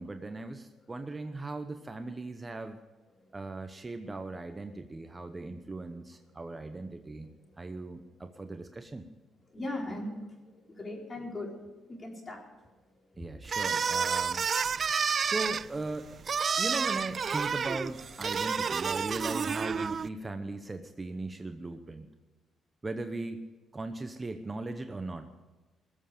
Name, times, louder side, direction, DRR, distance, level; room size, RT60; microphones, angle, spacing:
voice 1, 0.0-2.8 3.3-7.3 7.6-9.1 13.2-14.8 15.2-16.1 16.6-22.1 22.8-23.4 23.7-25.3, right 2 dB, 20° right, 7 dB, 0.9 m, -38 dB
voice 2, 7.4-7.7 9.5-11.5 11.9-12.4 13.1-13.3 14.9-15.0, left 1 dB, 30° left, 0 dB, 4.0 m, -39 dB
sound 1, 13.5-20.1, right 6 dB, 45° right, 0.4 m, -30 dB
20.5 x 7.9 x 6.9 m, 1.2 s
cardioid pair, 90°, 0 cm